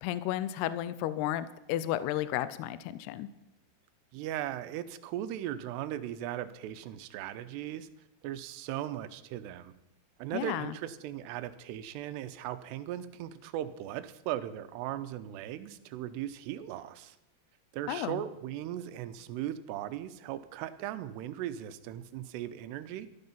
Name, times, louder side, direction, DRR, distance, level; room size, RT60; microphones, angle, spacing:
voice 1, 0.0-3.3 10.3-10.8 17.9-18.2, left 13 dB, 80° left, 14 dB, 2.5 m, -33 dB
voice 2, 4.1-7.9 8.2-9.7 10.2-17.2 17.7-23.1, right 12 dB, 85° right, 12 dB, 2.8 m, -38 dB
13.5 x 12.5 x 5.4 m, 0.89 s
omnidirectional pair, 4.9 m